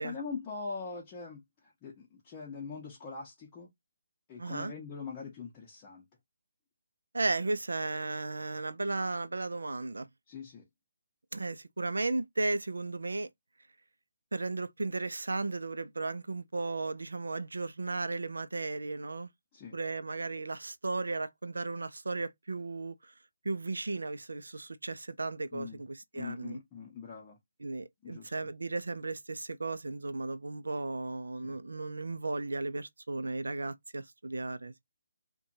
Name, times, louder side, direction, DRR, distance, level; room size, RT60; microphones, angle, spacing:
voice 1, 0.0-3.7 4.3-6.0 10.3-10.6 19.5-19.8 25.5-25.8 26.1-27.4 28.0-28.3 31.4-31.6, left 5 dB, 25° left, 0.7 m, -42 dB
voice 2, 4.4-4.7 7.1-10.1 11.3-13.3 14.3-19.3 19.7-23.1 23.4-26.6 27.6-34.8, right 3 dB, 80° right, 0.4 m, -35 dB
2.7 x 2.2 x 2.5 m
figure-of-eight pair, 150°, 0 cm